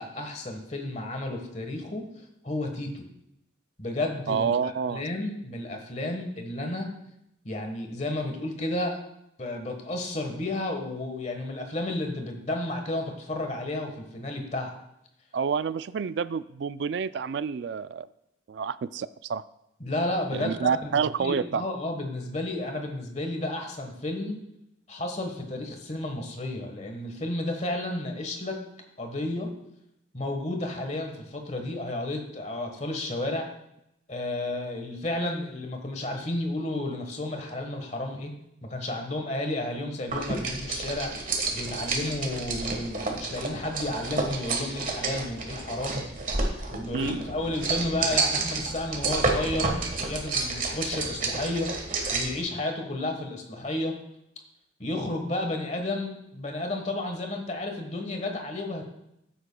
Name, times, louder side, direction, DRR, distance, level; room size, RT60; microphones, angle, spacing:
voice 1, 0.0-3.0 3.8-6.9 7.4-9.0 9.4-14.8 19.8-24.4 24.9-28.6 29.0-29.5 30.1-33.5 34.1-38.3 38.6-46.0 46.7-51.7 52.1-54.0 54.8-58.8, left 1 dB, 35° left, 4 dB, 1.3 m, -32 dB
voice 2, 4.3-5.0 15.3-18.1 18.5-19.4 20.3-21.6 46.9-47.2, right 6 dB, 60° right, 16 dB, 0.3 m, -28 dB
sound 1, 40.1-52.4, right 3 dB, 40° right, 1.4 m, -30 dB
14.0 x 8.5 x 2.2 m, 0.81 s
head